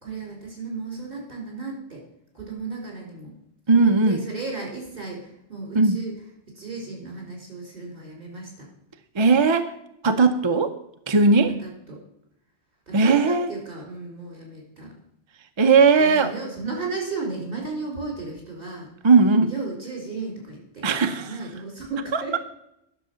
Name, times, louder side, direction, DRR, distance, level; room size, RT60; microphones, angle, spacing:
voice 1, 0.0-2.0 2.3-3.3 3.7-6.1 6.5-8.5 11.6-12.0 12.9-14.9 16.0-18.9 19.5-20.9 21.1-22.4, right 3 dB, 50° right, -1 dB, 4.5 m, -34 dB
voice 2, 3.7-4.2 5.7-6.0 9.2-9.7 10.0-10.8 11.1-11.5 12.9-13.5 15.6-16.3 19.0-19.5 20.8-21.3 22.1-22.4, right 4 dB, 35° right, 8 dB, 0.5 m, -18 dB
11.0 x 6.4 x 6.8 m, 0.78 s
omnidirectional pair, 1.2 m